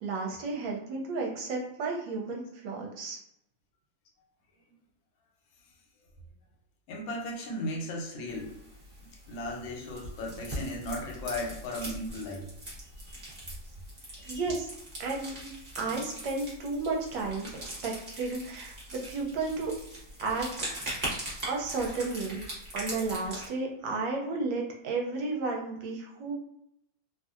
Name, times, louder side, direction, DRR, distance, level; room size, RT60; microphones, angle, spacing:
voice 1, 0.0-3.2 14.3-14.7 15.0-15.5 15.8-19.7 20.2-20.5 21.5-22.4 22.7-26.3, right 3 dB, 75° right, 0 dB, 1.2 m, -33 dB
voice 2, 6.9-8.5 9.3-12.5 13.1-13.2 14.2-14.4, left 1 dB, 80° left, 0 dB, 1.4 m, -36 dB
sound 1, 8.3-23.5, right 1 dB, 35° right, 0.9 m, -41 dB
3.0 x 2.5 x 2.4 m, 0.78 s
omnidirectional pair, 2.2 m